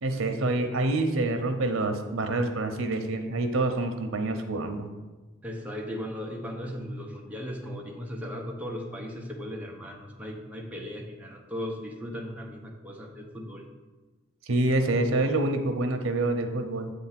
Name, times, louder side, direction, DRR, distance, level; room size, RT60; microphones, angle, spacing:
voice 1, 0.0-4.9 14.5-16.9, right 2 dB, 85° right, 6 dB, 0.8 m, -27 dB
voice 2, 5.4-13.7, equal, 5° right, 0 dB, 0.8 m, -37 dB
7.6 x 3.5 x 5.8 m, 1.2 s
head